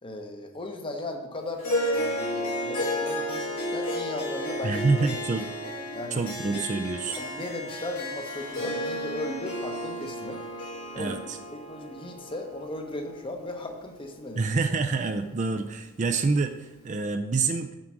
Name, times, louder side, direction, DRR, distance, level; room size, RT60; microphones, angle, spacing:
voice 1, 0.0-5.5 5.9-6.2 6.5-6.7 7.1-10.4 10.9-11.2 11.5-14.5, left 2 dB, 25° left, 4 dB, 0.8 m, -37 dB
Harp, 1.6-14.2, equal, 75° left, 2.2 m, -33 dB
voice 2, 4.6-5.4 6.1-7.2 11.0-11.2 14.4-16.6 16.8-17.7, right 4 dB, 35° right, 7 dB, 0.4 m, -26 dB
7.5 x 4.9 x 5.9 m, 1.0 s
head